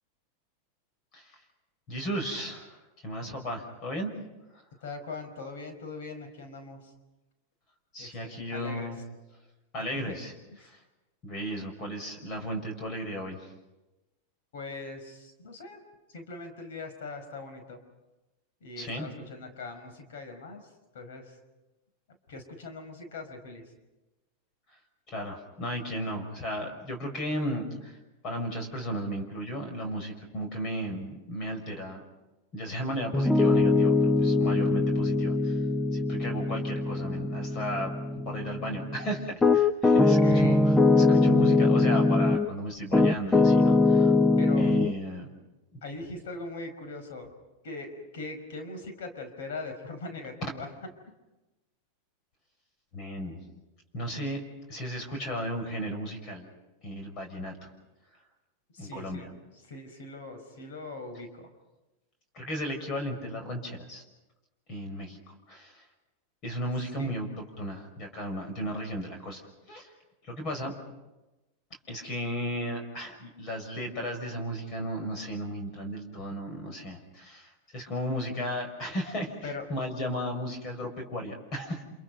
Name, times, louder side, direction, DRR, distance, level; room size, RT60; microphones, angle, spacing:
voice 1, 1.9-2.8 3.0-4.1 7.9-9.0 9.7-10.3 10.6-10.8 11.2-13.5 18.8-19.1 25.1-28.0 28.2-32.0 32.5-38.0 38.2-44.1 44.6-45.3 45.7-45.8 52.9-53.4 53.9-54.4 54.7-56.5 56.8-57.7 58.8-59.3 62.3-64.0 64.7-65.8 66.4-67.3 67.6-69.9 70.2-70.7 71.9-81.8, equal, 40° left, 4 dB, 5.9 m, -35 dB
voice 2, 4.8-6.9 8.0-8.9 10.0-10.2 14.5-15.8 16.1-17.8 18.6-20.7 20.9-21.4 22.3-23.6 39.9-40.6 44.4-44.7 45.8-47.3 47.6-50.7 58.7-59.3 59.7-61.5 67.0-67.1 79.4-79.6, left 3 dB, 80° left, 6 dB, 5.0 m, -41 dB
Piano, 33.1-42.5 42.9-44.9, left 3 dB, 10° left, 0.7 m, -22 dB
29.0 x 28.0 x 5.4 m, 1.0 s
supercardioid pair, 125°, 0 cm